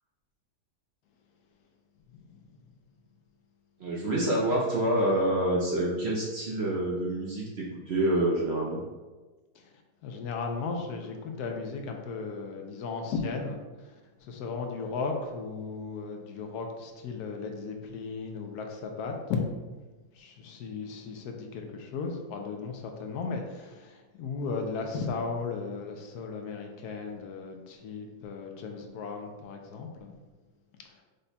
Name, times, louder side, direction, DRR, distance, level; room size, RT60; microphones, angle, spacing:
voice 1, 3.8-8.8, right 1 dB, 60° right, -4 dB, 0.7 m, -27 dB
voice 2, 10.0-13.9 14.2-19.4 20.1-30.1, left 4 dB, 80° left, 3 dB, 1.1 m, -36 dB
5.0 x 2.2 x 4.1 m, 1.3 s
omnidirectional pair, 1.7 m